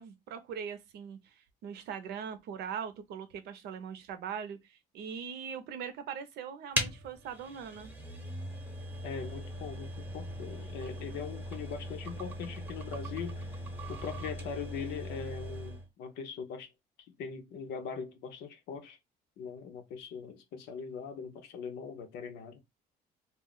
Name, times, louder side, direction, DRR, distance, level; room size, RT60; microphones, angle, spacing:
voice 1, 0.0-7.9, right 7 dB, 75° right, 0.6 m, -41 dB
sound 1, 6.7-15.9, right 1 dB, 10° right, 0.8 m, -39 dB
voice 2, 9.0-13.5 13.9-16.7 17.1-19.0 19.4-22.6, left 6 dB, 80° left, 0.7 m, -41 dB
2.3 x 2.0 x 3.6 m
cardioid pair, 110°, 17 cm